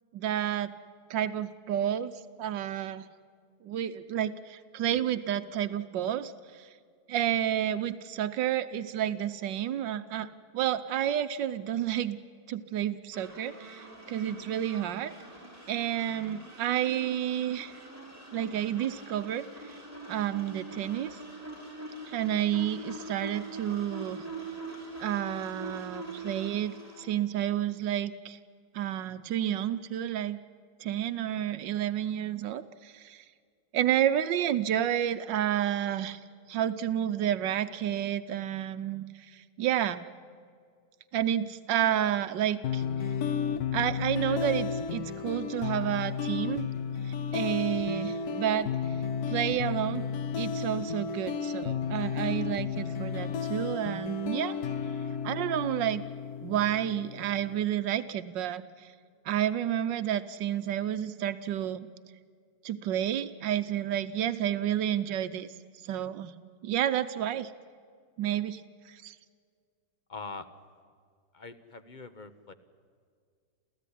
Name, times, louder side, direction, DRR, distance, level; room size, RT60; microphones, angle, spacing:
voice 1, 0.1-0.7 1.1-2.1 2.4-3.1 3.6-6.7 7.1-10.3 10.5-12.2 12.5-15.1 15.7-17.8 18.3-19.7 20.1-21.2 22.1-24.3 25.0-28.4 28.7-30.4 30.8-33.2 33.7-36.2 36.5-40.0 41.1-42.8 43.7-46.7 47.0-48.7 49.3-50.0 50.4-54.6 55.2-56.0 56.4-58.9 59.2-61.9 62.6-65.5 65.8-66.3 66.6-67.5 68.2-68.6 68.9-69.2, right 11 dB, 85° right, 10 dB, 1.5 m, -30 dB
sound 1, 13.1-27.1, right 2 dB, 10° right, 5.0 m, -44 dB
sound 2, 42.6-57.7, left 6 dB, 65° left, 1.4 m, -33 dB
voice 2, 70.1-70.5 71.3-72.5, left 4 dB, 30° left, 11 dB, 1.1 m, -43 dB
28.5 x 15.0 x 10.0 m, 2.1 s
omnidirectional pair, 1.9 m